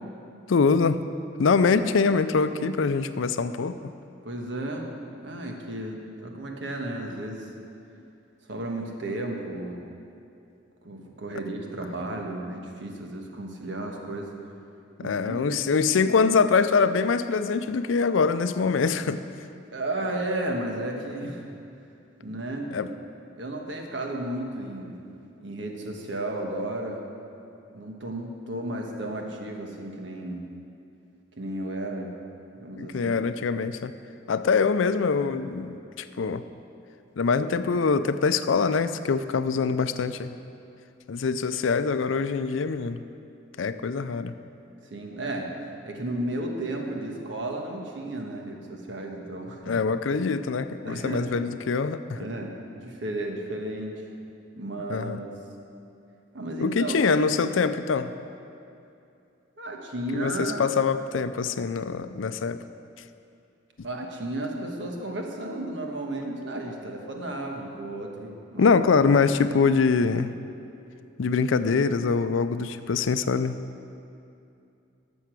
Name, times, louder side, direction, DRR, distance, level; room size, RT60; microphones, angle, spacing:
voice 1, 0.5-1.0 1.4-3.9 15.0-19.2 22.7-22.9 32.8-33.9 34.3-36.4 37.2-40.4 41.1-43.0 43.6-44.3 49.7-52.3 54.9-55.2 56.6-58.1 60.1-62.6 68.6-70.4 71.2-73.6, left 5 dB, 90° left, 12 dB, 0.5 m, -24 dB
voice 2, 4.2-4.9 5.2-7.5 8.5-9.9 10.8-14.3 15.0-15.4 19.7-21.6 22.2-22.7 23.4-25.0 25.4-27.1 27.7-30.4 31.4-32.2 32.6-33.2 44.9-45.5 45.8-49.7 50.8-51.3 52.1-54.0 54.5-55.3 56.3-57.1 59.6-60.7 63.8-68.8, right 1 dB, 70° right, 1 dB, 1.3 m, -33 dB
13.0 x 7.0 x 6.0 m, 2.6 s
head